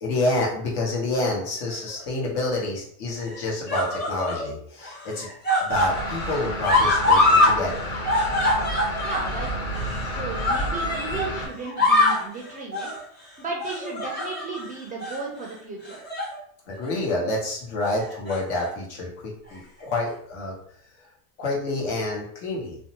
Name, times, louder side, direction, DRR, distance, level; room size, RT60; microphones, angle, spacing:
voice 1, 0.0-5.3 5.6-7.9 16.7-20.5 21.0-21.1 21.4-22.8, left 2 dB, 75° left, -2 dB, 1.1 m, -28 dB
sound 1, 1.7-2.3 3.2-4.5 4.8-7.6 7.8-11.3 11.6-12.3 12.7-13.0 13.6-14.6 15.0-15.2 15.9-16.4 16.7-16.9 18.0-18.7 19.5-19.6, left 2 dB, 25° left, 0.8 m, -24 dB
sound 2, 5.7-11.5, equal, 45° left, 1.3 m, -30 dB
voice 2, 9.0-9.5 10.0-12.9 13.4-16.0, right 3 dB, 20° right, -1 dB, 0.3 m, -34 dB
2.6 x 2.1 x 2.8 m, 0.62 s
supercardioid pair, 120°, 44 cm